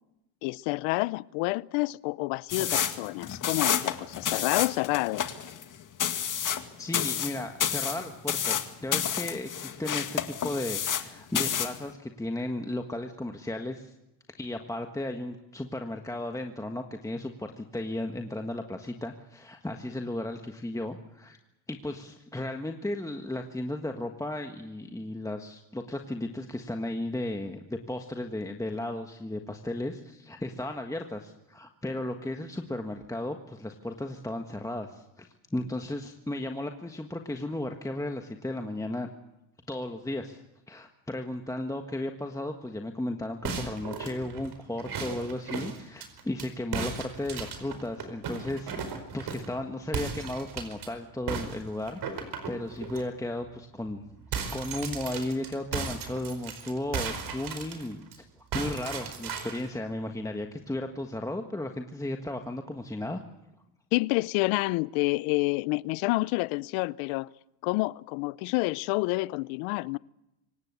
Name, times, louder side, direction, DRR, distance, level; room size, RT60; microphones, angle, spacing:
voice 1, 0.4-5.2 63.9-67.3 67.6-70.0, left 23 dB, 80° left, 0.7 m, -28 dB
sound 1, 2.5-11.1 11.3-11.8, left 9 dB, 40° left, 2.1 m, -29 dB
voice 2, 6.8-13.9 14.4-21.4 21.7-39.1 39.7-40.4 40.7-54.0 54.5-58.0 58.5-63.2, left 1 dB, 5° left, 1.6 m, -35 dB
sound 2, 43.4-46.5 46.7-49.5 49.9-50.9 51.3-53.0 53.4-53.6 53.9-58.2 58.5-59.7, right 5 dB, 50° right, 4.9 m, -36 dB
26.0 x 17.0 x 8.4 m
supercardioid pair, 100°, 49 cm